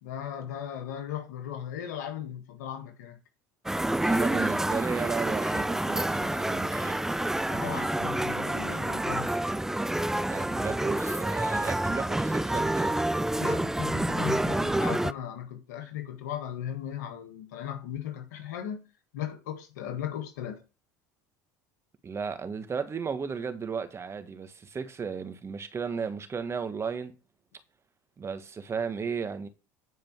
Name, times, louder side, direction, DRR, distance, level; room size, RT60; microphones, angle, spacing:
voice 1, 0.0-3.2 7.5-9.4 13.4-18.8 19.1-20.6, left 10 dB, 85° left, 1.7 m, -37 dB
sound 1, 3.7-15.1, right 1 dB, 5° right, 0.4 m, -28 dB
voice 2, 4.0-7.1 10.2-12.9 22.0-27.1 28.2-29.5, right 6 dB, 30° right, 1.5 m, -34 dB
9.6 x 5.0 x 6.0 m
hypercardioid pair, 80°, 9 cm